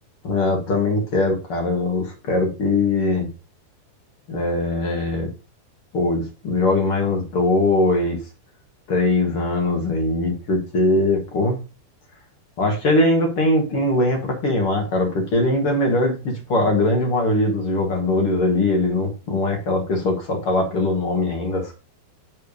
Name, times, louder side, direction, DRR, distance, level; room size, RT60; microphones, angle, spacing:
voice 1, 0.2-3.3 4.3-5.3 5.9-8.2 8.9-11.6 12.6-21.8, left 2 dB, 50° left, 2 dB, 1.8 m, -21 dB
7.9 x 3.4 x 6.4 m, 0.31 s
omnidirectional pair, 4.7 m